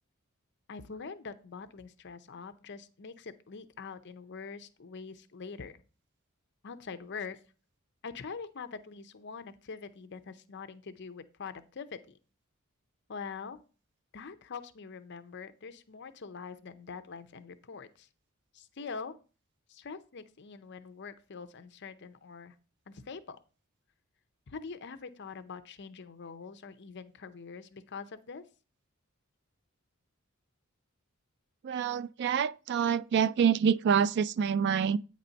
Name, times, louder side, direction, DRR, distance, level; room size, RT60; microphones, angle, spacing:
voice 1, 0.7-5.8 6.6-7.4 8.0-12.2 13.1-13.6 14.1-18.1 18.5-19.1 19.7-22.5 22.9-23.4 24.5-28.4, left 5 dB, 55° left, 0.6 m, -44 dB
voice 2, 31.6-35.0, right 7 dB, 55° right, 0.3 m, -26 dB
8.9 x 4.2 x 5.2 m
head